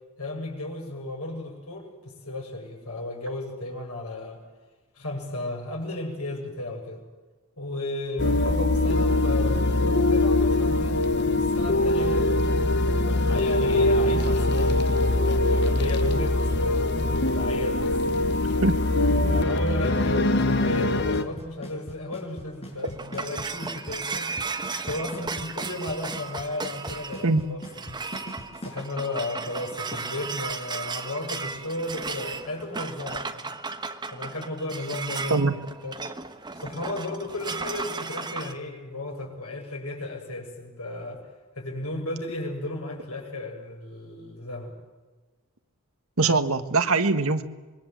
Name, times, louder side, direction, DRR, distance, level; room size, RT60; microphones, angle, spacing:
voice 1, 0.2-4.4 4.9-7.0 7.6-12.4 13.1-18.0 19.2-24.3 24.8-27.6 27.8-28.0 28.6-33.5 34.1-35.4 35.8-36.0 36.5-41.2 41.6-44.7, left 2 dB, 85° left, 0 dB, 7.8 m, -34 dB
sound 1, 8.2-21.2, left 2 dB, 50° left, 1.3 m, -22 dB
Drum kit / Snare drum / Bass drum, 20.9-28.8, equal, 30° left, 6.2 m, -39 dB
sound 2, 22.5-38.5, right 4 dB, 20° right, 1.3 m, -35 dB
voice 2, 46.2-47.4, right 3 dB, 70° right, 9 dB, 1.6 m, -22 dB
25.5 x 23.5 x 7.8 m, 1.3 s
head